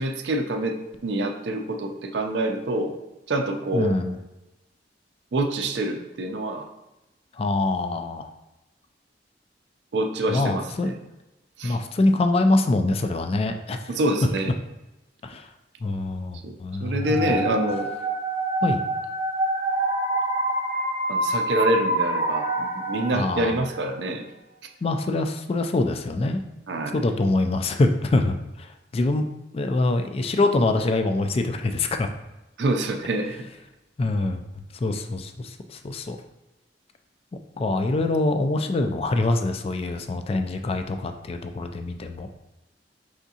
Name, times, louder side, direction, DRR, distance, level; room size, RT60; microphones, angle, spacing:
voice 1, 0.0-3.0 3.3-4.0 5.3-6.7 9.9-10.9 11.6-11.8 13.9-14.5 16.4-16.5 16.8-17.9 21.1-24.3 26.7-27.0 32.6-33.4, right 1 dB, 70° right, 3 dB, 0.5 m, -26 dB
voice 2, 3.7-4.2 7.3-8.3 10.3-10.9 11.6-13.8 15.2-15.5 15.8-17.5 18.6-18.8 23.1-23.7 24.8-26.4 26.9-29.2 29.5-32.1 34.0-34.4 34.8-36.2 37.6-42.3, left 2 dB, 35° left, 7 dB, 0.3 m, -24 dB
sound 1, 17.0-23.9, right 1 dB, 20° right, 0.6 m, -26 dB
4.9 x 3.5 x 2.7 m, 0.98 s
head